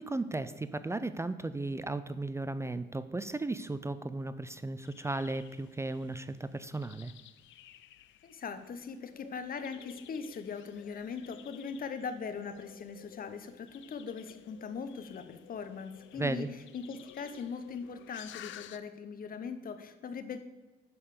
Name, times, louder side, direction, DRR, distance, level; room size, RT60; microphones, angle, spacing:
voice 1, 0.0-7.1 16.1-16.5, right 2 dB, 15° right, 13 dB, 0.4 m, -35 dB
sound 1, 4.8-18.8, left 12 dB, 75° left, 0.5 m, -54 dB
voice 2, 8.2-16.5 16.7-20.4, left 5 dB, 45° left, 10 dB, 0.9 m, -40 dB
6.9 x 5.5 x 6.6 m, 1.2 s
cardioid pair, 90°, 20 cm